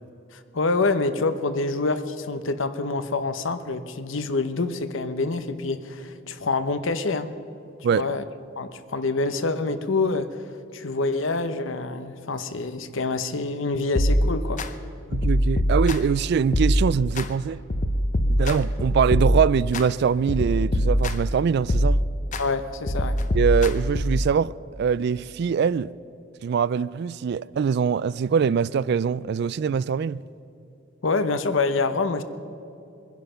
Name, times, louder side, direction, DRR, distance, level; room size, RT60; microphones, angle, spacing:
voice 1, 0.3-7.3 7.9-8.3 8.6-10.4 10.7-14.6 22.4-23.2 31.0-32.2, left 3 dB, 70° left, 0.8 m, -26 dB
sound 1, 14.0-14.7 15.1-16.2 16.5-17.3 17.7-19.9 20.3-21.3 21.7-22.4 22.9-24.3, equal, 40° left, 0.7 m, -23 dB
voice 2, 15.1-17.6 18.3-22.0 23.3-25.9 26.4-30.2, right 6 dB, 55° right, 0.3 m, -23 dB
22.0 x 10.5 x 5.8 m
head